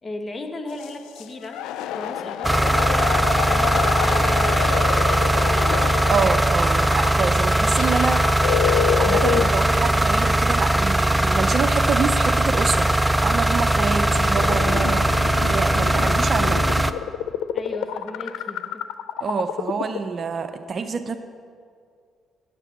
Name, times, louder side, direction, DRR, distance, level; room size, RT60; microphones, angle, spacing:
voice 1, 0.0-1.7 2.0-5.7 17.5-18.8, left 2 dB, 30° left, 5 dB, 1.4 m, -36 dB
sound 1, 0.7-10.0 10.7-10.8 12.4-20.0, left 10 dB, 70° left, 0.4 m, -28 dB
sound 2, 2.4-16.9, right 1 dB, 10° right, 0.5 m, -20 dB
voice 2, 6.1-8.2 8.9-12.9 13.2-15.0 15.4-16.6 19.2-21.2, right 5 dB, 50° right, 9 dB, 0.7 m, -26 dB
9.0 x 6.8 x 7.5 m, 2.2 s
hypercardioid pair, 45°, 0 cm